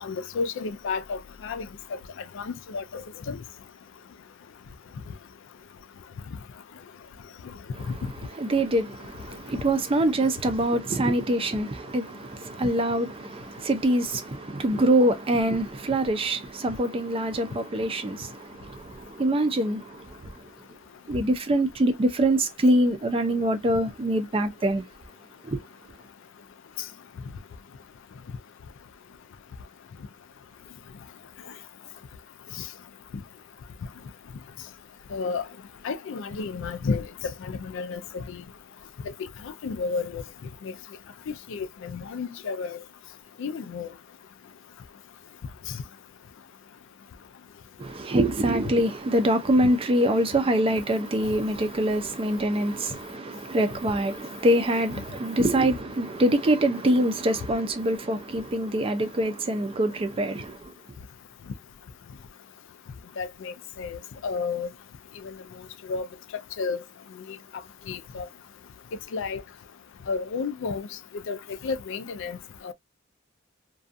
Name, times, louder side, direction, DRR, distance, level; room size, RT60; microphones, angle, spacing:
voice 1, 0.0-1.7 2.4-2.8 3.3-3.4 35.1-35.4 35.8-37.0 37.4-38.4 39.6-40.2 40.6-40.7 41.5-42.8 43.4-43.9 63.2-64.7 65.9-66.1 66.6-66.8 67.9-68.3 69.1-69.4 70.1-70.9 71.3-71.4 71.6-72.4 72.6-72.7, left 4 dB, 65° left, 0.4 m, -31 dB
voice 2, 8.4-20.1 21.1-24.8 25.4-25.6 47.8-60.6, right 1 dB, 30° right, 0.4 m, -24 dB
2.4 x 2.3 x 2.5 m
head